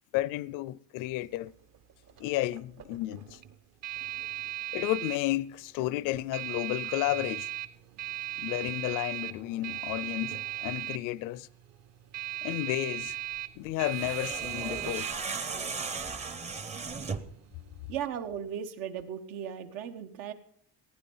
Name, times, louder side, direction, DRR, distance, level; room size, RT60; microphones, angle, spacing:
voice 1, 0.1-1.5 2.2-3.4 4.7-7.5 8.4-11.5 12.4-13.2 13.6-15.1, left 16 dB, 70° left, 0.5 m, -32 dB
sound 1, 1.1-17.9, right 15 dB, 50° right, 0.8 m, -39 dB
sound 2, 13.8-17.4, right 5 dB, 20° right, 0.6 m, -36 dB
voice 2, 17.9-20.3, right 8 dB, 90° right, 1.4 m, -36 dB
15.5 x 9.7 x 5.5 m
cardioid pair, 160°, 34 cm